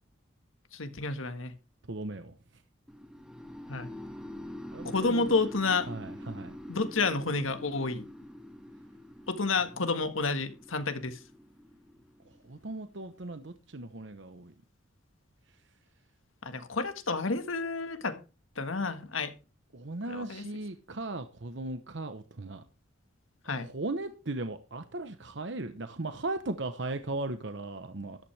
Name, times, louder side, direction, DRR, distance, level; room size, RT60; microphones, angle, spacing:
voice 1, 0.7-1.5 3.7-3.9 4.8-5.9 6.7-8.1 9.3-11.2 16.4-18.2 18.6-19.3 20.1-20.4 23.5-23.7, left 3 dB, 85° left, 1.7 m, -30 dB
voice 2, 1.9-2.3 4.7-5.2 5.9-6.5 10.0-10.1 12.4-14.5 19.7-22.6 23.5-28.2, right 2 dB, 60° right, 1.0 m, -37 dB
sound 1, 2.9-12.8, left 1 dB, 5° right, 1.8 m, -45 dB
13.5 x 12.0 x 3.4 m
head